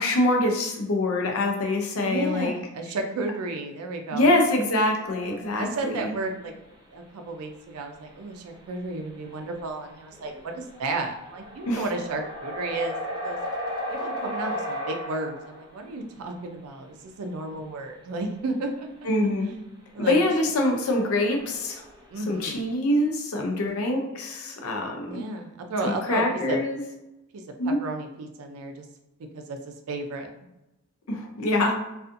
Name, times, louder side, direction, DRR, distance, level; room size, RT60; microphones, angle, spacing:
voice 1, 0.0-2.6 4.1-6.1 11.7-11.8 19.1-19.5 20.0-21.8 22.3-25.2 25.8-26.8 27.6-27.8 31.1-31.8, left 1 dB, 75° left, 2 dB, 0.5 m, -24 dB
voice 2, 2.0-4.3 5.6-6.5 6.9-13.4 13.9-18.9 19.9-20.2 22.1-22.7 25.0-26.7 27.3-28.8 29.3-30.3, right 2 dB, 90° right, 4 dB, 0.4 m, -33 dB
sound 1, 5.0-5.9 6.6-6.7 8.1-8.2 8.5-8.7 9.3-9.4 9.6-15.9 20.1-20.2 20.5-22.1, equal, 20° right, 0.4 m, -35 dB
2.5 x 2.4 x 2.5 m, 0.95 s
head